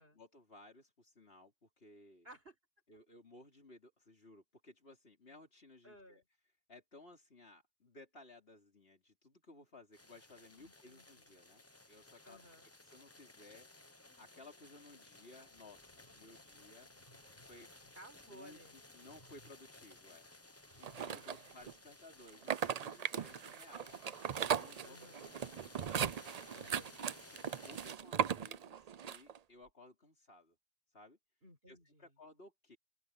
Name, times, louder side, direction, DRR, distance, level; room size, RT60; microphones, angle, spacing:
voice 1, 0.1-2.3 2.9-6.2 6.7-12.4 12.9-13.7 14.2-16.9 17.5-17.7 18.3-20.3 20.8-24.0 24.6-25.0 25.4-25.7 27.0-30.6 30.9-31.2 31.7-32.8, left 2 dB, 65° left, 4.3 m, -58 dB
voice 2, 2.2-2.6 5.8-6.2 10.6-11.3 12.2-12.7 15.9-17.0 18.0-18.8 20.9-21.5 24.8-25.3 26.5-27.0 31.4-32.2, right 1 dB, 65° right, 5.5 m, -58 dB
sound 1, 9.9-27.9, left 2 dB, 15° left, 0.9 m, -59 dB
sound 2, 15.8-21.9, equal, 35° left, 5.9 m, -68 dB
sound 3, 20.8-21.7 22.3-29.4, right 8 dB, 45° right, 0.6 m, -38 dB
open air
omnidirectional pair, 1.1 m